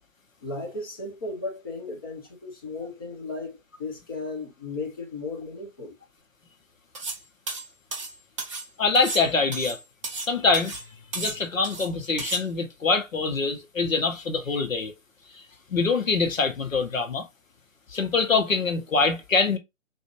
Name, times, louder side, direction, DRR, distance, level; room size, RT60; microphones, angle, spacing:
voice 1, 0.4-5.9, left 3 dB, 15° left, 0.6 m, -35 dB
sound 1, 7.0-7.2 7.5-8.7 9.0-10.3 10.5-10.9 11.1-11.9 12.2-12.4, right 3 dB, 25° right, 0.6 m, -34 dB
voice 2, 8.8-9.8 10.2-10.8 11.1-14.9 15.7-17.3 17.9-19.6, left 4 dB, 75° left, 1.0 m, -24 dB
3.7 x 2.6 x 2.9 m
figure-of-eight pair, 135°, 40 cm